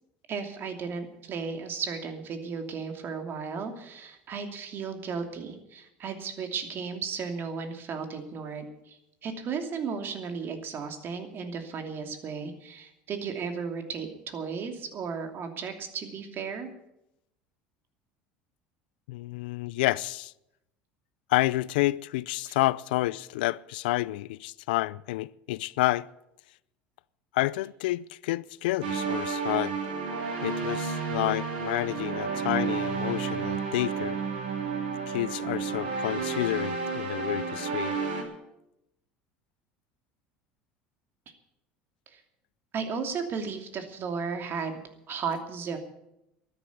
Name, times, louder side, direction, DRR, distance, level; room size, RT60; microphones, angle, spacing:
voice 1, 0.3-16.7 22.5-22.6 42.1-42.2 42.7-45.8, right 5 dB, 45° right, 2.8 m, -35 dB
voice 2, 19.1-20.3 21.3-26.1 27.3-29.8 30.4-34.2 35.1-37.9, left 18 dB, 75° left, 0.4 m, -29 dB
sound 1, 28.8-38.2, right 5 dB, 80° right, 3.3 m, -31 dB
13.0 x 10.0 x 9.4 m
hypercardioid pair, 80°, 5 cm